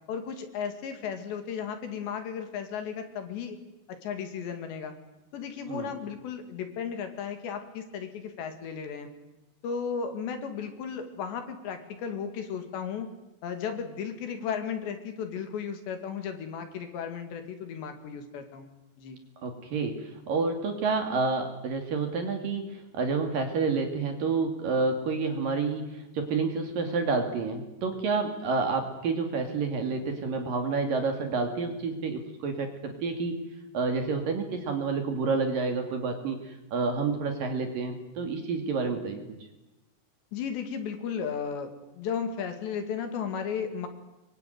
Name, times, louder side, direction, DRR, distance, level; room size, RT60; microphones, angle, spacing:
voice 1, 0.1-3.6 3.9-4.9 5.3-9.1 9.6-13.1 13.4-18.7 19.0-19.2 40.3-41.7 42.0-43.9, left 7 dB, 70° left, 7 dB, 4.4 m, -35 dB
voice 2, 19.4-33.5 33.7-36.4 36.7-39.2, right 4 dB, 50° right, 5 dB, 3.8 m, -29 dB
24.0 x 23.5 x 9.4 m, 0.98 s
omnidirectional pair, 5.4 m